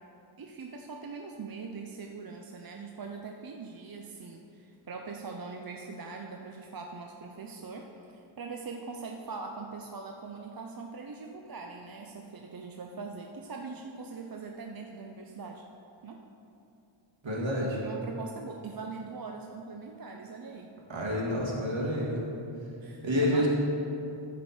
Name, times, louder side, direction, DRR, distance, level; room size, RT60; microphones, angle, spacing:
voice 1, 0.4-15.6 16.0-16.2 17.8-20.7 22.0-22.1 22.8-23.5, right 4 dB, 45° right, 2 dB, 0.6 m, -42 dB
voice 2, 17.2-17.8 20.9-22.3 23.0-23.5, equal, 70° right, -4 dB, 2.0 m, -28 dB
13.5 x 5.1 x 4.3 m, 2.7 s
wide cardioid pair, 70°, 48 cm